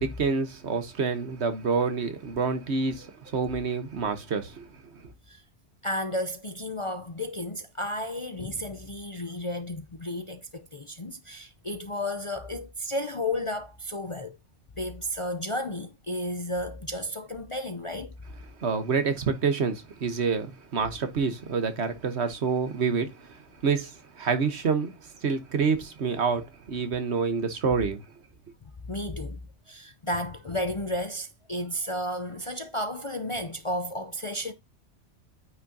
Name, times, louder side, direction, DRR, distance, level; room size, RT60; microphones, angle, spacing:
voice 1, 0.0-5.0 18.6-28.0, right 5 dB, 65° right, 1.4 m, -28 dB
voice 2, 5.8-14.4 14.8-18.1 28.9-29.4 29.7-34.5, left 1 dB, 35° left, 0.6 m, -33 dB
9.4 x 6.0 x 2.8 m
omnidirectional pair, 1.2 m